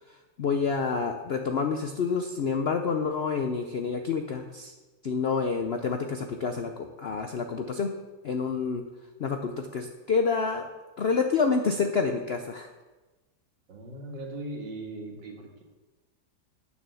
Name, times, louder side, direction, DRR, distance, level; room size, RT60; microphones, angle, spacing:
voice 1, 0.4-4.7 5.0-7.9 8.2-8.8 9.2-10.7 11.0-12.7, left 5 dB, 70° left, 5 dB, 0.6 m, -28 dB
voice 2, 13.7-15.6, right 2 dB, 85° right, 1 dB, 2.4 m, -39 dB
9.0 x 7.1 x 6.8 m, 1.2 s
omnidirectional pair, 1.9 m